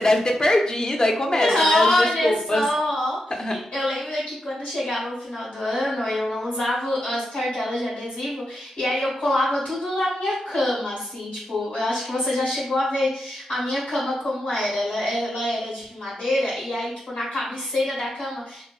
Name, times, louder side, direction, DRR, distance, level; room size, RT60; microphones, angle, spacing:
voice 1, 0.0-2.6 3.4-3.5, left 1 dB, 30° left, 2 dB, 0.5 m, -22 dB
voice 2, 1.3-18.6, left 1 dB, 80° left, -9 dB, 1.2 m, -25 dB
2.5 x 2.1 x 2.3 m, 0.64 s
cardioid pair, 50°, 3 cm